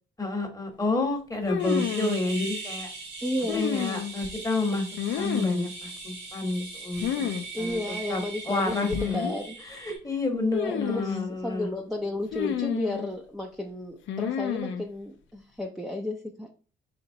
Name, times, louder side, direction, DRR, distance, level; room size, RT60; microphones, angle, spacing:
voice 1, 0.2-2.9 3.5-4.9 5.1-7.3 7.6-9.3 9.6-11.7, left 2 dB, 15° left, 3 dB, 1.0 m, -30 dB
sound 1, 1.5-2.2 3.5-4.3 5.0-5.7 7.0-7.4 7.7-7.8 8.7-9.4 10.5-11.3 12.3-13.1 14.1-14.8, left 9 dB, 75° left, 0.5 m, -30 dB
sound 2, 1.6-10.0, right 3 dB, 75° right, 1.5 m, -40 dB
voice 2, 3.2-3.7 7.5-9.6 10.3-16.5, left 1 dB, ahead, 2 dB, 0.5 m, -33 dB
4.1 x 2.9 x 2.6 m, 0.38 s
cardioid pair, 90°, 20 cm